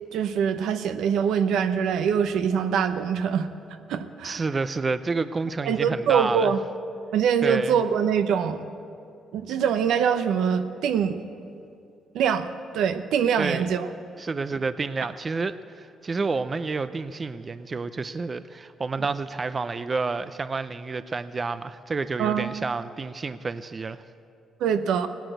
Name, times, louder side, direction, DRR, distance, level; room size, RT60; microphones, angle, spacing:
voice 1, 0.1-3.5 3.9-4.4 5.6-6.6 7.1-8.7 9.3-11.2 12.1-13.9 22.2-22.5 24.6-25.1, right 7 dB, 85° right, 9 dB, 0.9 m, -24 dB
voice 2, 4.2-6.5 7.4-7.8 13.4-13.7 14.2-24.0, right 4 dB, 35° right, 12 dB, 0.5 m, -29 dB
17.5 x 10.5 x 8.0 m, 2.6 s
cardioid pair, 90°, 0 cm